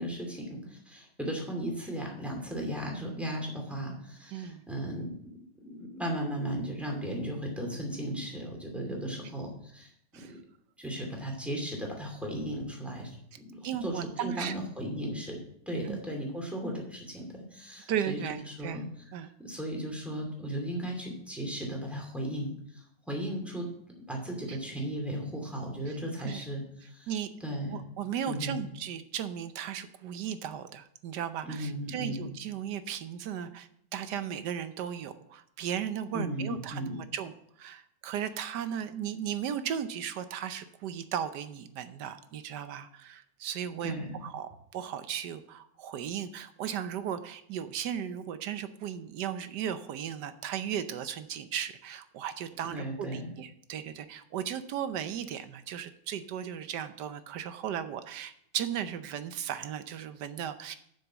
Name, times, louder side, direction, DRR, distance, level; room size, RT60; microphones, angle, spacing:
voice 1, 0.0-10.4 10.8-15.4 15.7-18.8 19.2-23.7 24.0-27.1 27.4-27.8 28.2-28.6 31.4-32.3 36.1-37.0 43.8-44.2 52.7-53.3, equal, ahead, -1 dB, 2.5 m, -36 dB
voice 2, 4.3-4.6 10.1-10.3 13.6-14.5 15.8-16.0 17.9-18.8 19.1-19.3 26.2-26.4 27.1-27.3 27.7-37.3 37.6-44.0 44.2-60.8, right 9 dB, 75° right, 11 dB, 1.3 m, -36 dB
7.2 x 6.4 x 7.4 m, 0.70 s
omnidirectional pair, 1.9 m